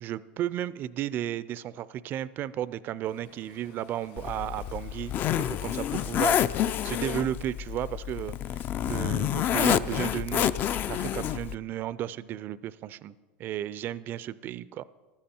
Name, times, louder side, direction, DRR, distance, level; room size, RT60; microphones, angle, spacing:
voice 1, 0.0-5.1 5.4-10.5 10.9-14.8, right 11 dB, 35° right, 18 dB, 0.4 m, -34 dB
Waves surf, 3.0-8.2, left 6 dB, 70° left, 3.6 m, -52 dB
Zipper (clothing), 4.2-11.5, left 10 dB, 35° left, 0.3 m, -28 dB
14.5 x 12.5 x 4.4 m, 1.3 s
supercardioid pair, 140°, 6 cm